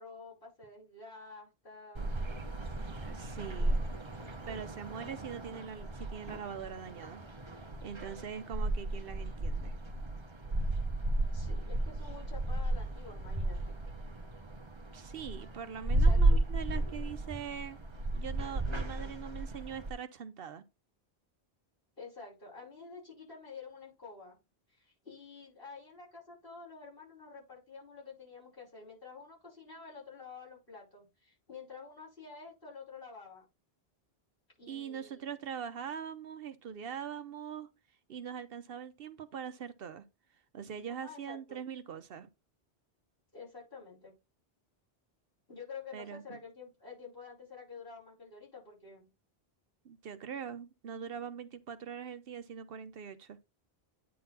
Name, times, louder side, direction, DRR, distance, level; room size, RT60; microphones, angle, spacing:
voice 1, 0.0-2.1 3.0-3.2 3.5-3.9 11.3-13.6 16.0-16.4 22.0-24.4 24.7-33.5 34.6-35.3 40.9-41.6 43.3-44.1 45.5-49.1, left 5 dB, 55° left, 5.5 m, -49 dB
sound 1, 1.9-19.9, right 2 dB, 30° right, 0.9 m, -33 dB
voice 2, 3.0-3.8 4.5-7.2 7.8-9.7 14.9-17.8 18.1-20.6 34.7-37.7 38.1-40.0 40.5-42.3 45.9-46.4 49.8-53.4, right 7 dB, 65° right, 0.9 m, -42 dB
9.4 x 3.9 x 4.1 m
omnidirectional pair, 1.1 m